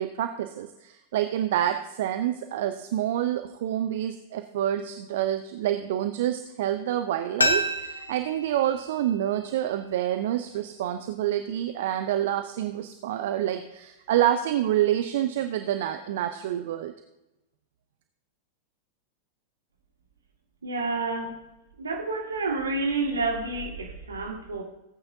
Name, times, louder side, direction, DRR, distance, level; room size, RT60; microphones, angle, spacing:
voice 1, 0.0-16.9, right 11 dB, 55° right, 8 dB, 0.6 m, -27 dB
sound 1, 7.4-10.2 10.5-10.6, left 1 dB, 80° left, 1.0 m, -30 dB
voice 2, 20.6-21.3 21.8-24.6, right 3 dB, 75° right, 1 dB, 2.0 m, -29 dB
17.0 x 8.9 x 2.7 m, 0.96 s
figure-of-eight pair, 90°, 0 cm